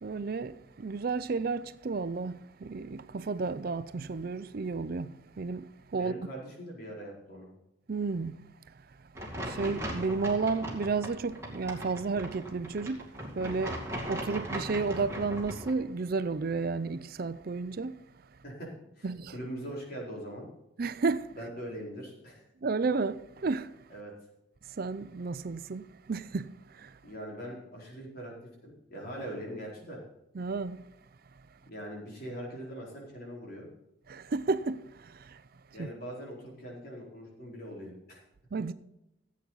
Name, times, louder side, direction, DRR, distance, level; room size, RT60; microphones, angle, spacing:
voice 1, 0.0-6.1 7.9-8.3 9.3-13.8 14.1-18.0 19.0-19.3 20.8-21.3 22.6-23.7 24.7-27.0 30.3-30.8 34.1-35.4 35.8-35.9 38.5-38.7, right 4 dB, 50° right, 0.5 m, -32 dB
voice 2, 6.0-7.5 18.4-18.7 19.0-20.5 21.4-22.4 23.9-24.1 27.0-28.3 28.6-30.0 31.7-33.7 35.7-38.2, equal, 50° left, 4.3 m, -42 dB
sound 1, 9.1-15.7, right 1 dB, 15° right, 2.4 m, -39 dB
16.0 x 8.4 x 4.0 m
head